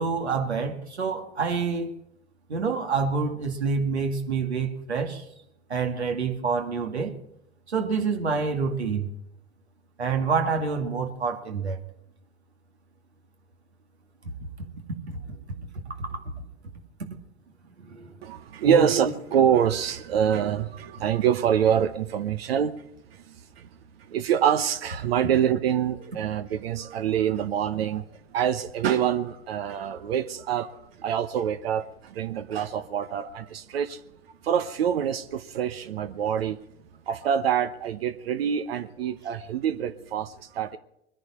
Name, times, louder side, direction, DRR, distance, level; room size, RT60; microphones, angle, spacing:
voice 1, 0.0-1.9 2.5-5.2 5.7-7.1 7.7-9.1 10.0-11.8 15.1-15.2 15.9-16.2 17.8-18.1 18.6-18.9, right 5 dB, 80° right, 2.3 m, -27 dB
voice 2, 18.2-22.8 23.1-23.7 24.0-34.0 34.4-36.6 37.1-40.8, right 9 dB, 65° right, 1.0 m, -26 dB
23.5 x 10.5 x 4.4 m
figure-of-eight pair, 90°, 32 cm